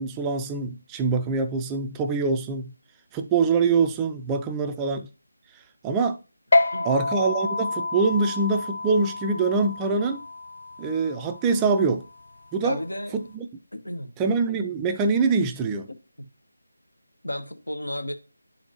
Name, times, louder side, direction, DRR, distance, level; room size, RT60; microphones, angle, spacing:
voice 1, 0.0-2.7 3.1-5.1 5.8-6.2 6.8-10.2 10.8-12.0 12.5-12.8 13.3-13.4 14.2-15.9, right 4 dB, 10° right, 0.4 m, -24 dB
sound 1, 6.5-13.3, left 2 dB, 50° left, 0.6 m, -29 dB
voice 2, 12.6-13.2 13.7-14.1 15.9-16.3 17.2-18.1, left 1 dB, 85° left, 1.2 m, -33 dB
10.0 x 4.2 x 2.9 m
figure-of-eight pair, 160°, 0 cm